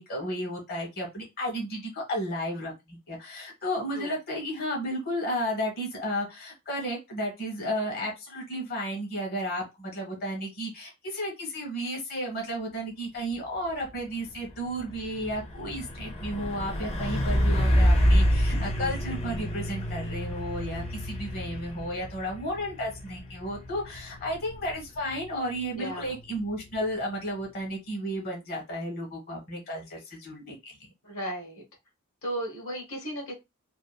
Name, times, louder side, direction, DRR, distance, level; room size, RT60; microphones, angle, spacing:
voice 1, 0.0-30.8, equal, 45° left, -1 dB, 1.1 m, -33 dB
Truck, 13.7-14.0 14.3-26.9, equal, 30° left, 0.6 m, -28 dB
voice 2, 25.7-26.1 31.0-31.6 32.2-33.3, right 1 dB, 70° left, -1 dB, 1.1 m, -35 dB
2.8 x 2.3 x 2.2 m, 0.22 s
head